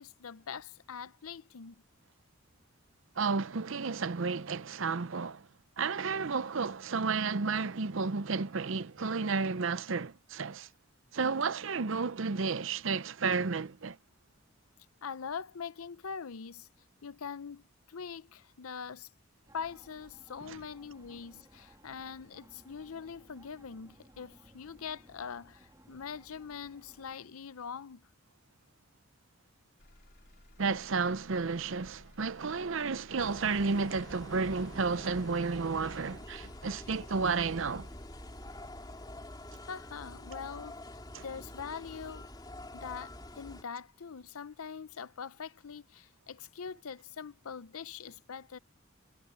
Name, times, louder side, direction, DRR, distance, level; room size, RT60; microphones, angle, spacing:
voice 1, 0.0-1.8 15.0-16.7 17.0-19.1 19.5-28.0 39.7-40.8 41.2-42.3 42.7-48.6, left 6 dB, 90° left, 0.7 m, -43 dB
voice 2, 3.2-5.5 5.8-10.7 11.1-14.0 20.5-20.6 30.6-37.9 41.1-41.2, right 4 dB, 65° right, 0.6 m, -32 dB
sound 1, 19.5-27.2, right 1 dB, 15° right, 2.3 m, -60 dB
Motor vehicle (road), 29.8-43.8 44.3-44.8, left 1 dB, 50° left, 3.7 m, -57 dB
sound 2, 33.2-43.6, left 1 dB, 20° left, 3.6 m, -47 dB
head